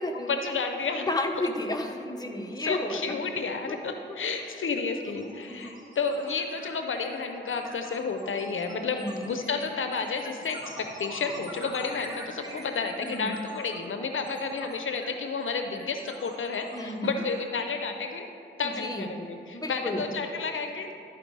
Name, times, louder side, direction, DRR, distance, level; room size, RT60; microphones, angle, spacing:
voice 1, 0.3-1.1 1.3-1.5 2.6-18.3 18.6-20.9, left 4 dB, 75° left, 6 dB, 0.6 m, -31 dB
voice 2, 0.9-3.2 3.7-3.8 4.1-4.2 5.5-5.7 8.9-9.2 13.0-13.4 16.7-17.2 18.6-19.1 19.5-20.0, left 2 dB, 20° left, 2 dB, 0.9 m, -32 dB
sound 1, 4.0-4.1 4.4-18.8, right 1 dB, 20° right, 1.7 m, -45 dB
12.0 x 4.7 x 4.6 m, 2.7 s
cardioid pair, 60°, 21 cm